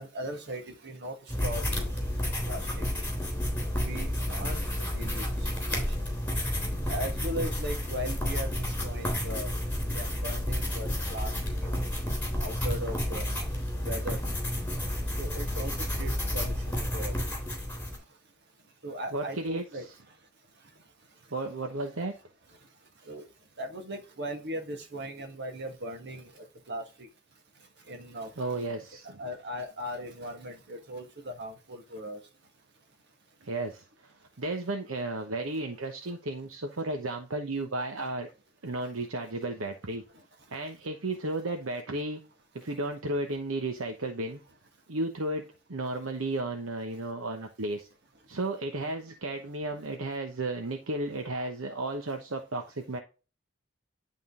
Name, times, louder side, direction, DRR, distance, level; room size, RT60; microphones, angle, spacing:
voice 1, 0.0-2.1 2.4-2.9 3.8-4.7 4.9-6.0 6.8-9.5 9.9-11.7 12.4-13.2 13.8-14.2 15.2-17.2 18.8-19.9 23.0-23.2 23.6-27.1 27.9-28.3 29.0-32.2 40.1-40.2 42.6-42.7 49.7-49.8, equal, 60° right, 4 dB, 1.7 m, -38 dB
sound 1, 1.3-18.0, left 1 dB, 10° left, 3.4 m, -31 dB
voice 2, 19.1-19.9 21.3-22.1 28.4-29.2 33.4-38.3 38.6-40.0 40.5-42.2 42.5-44.4 44.9-45.4 45.7-47.9 48.3-53.0, right 2 dB, 75° right, 4 dB, 1.0 m, -33 dB
11.0 x 3.8 x 3.7 m, 0.32 s
head